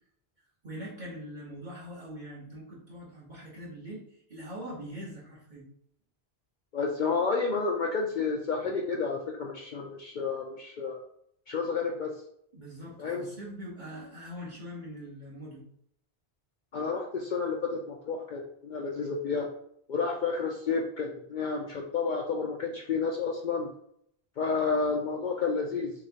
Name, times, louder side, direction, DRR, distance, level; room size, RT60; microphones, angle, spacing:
voice 1, 0.6-5.7 12.5-15.6, equal, 50° right, -7 dB, 1.2 m, -42 dB
voice 2, 6.7-11.0 11.5-12.1 13.0-13.3 16.7-19.5 19.9-23.7 24.4-25.9, left 4 dB, 60° left, 1 dB, 0.6 m, -30 dB
6.0 x 2.3 x 2.8 m, 0.70 s
omnidirectional pair, 1.1 m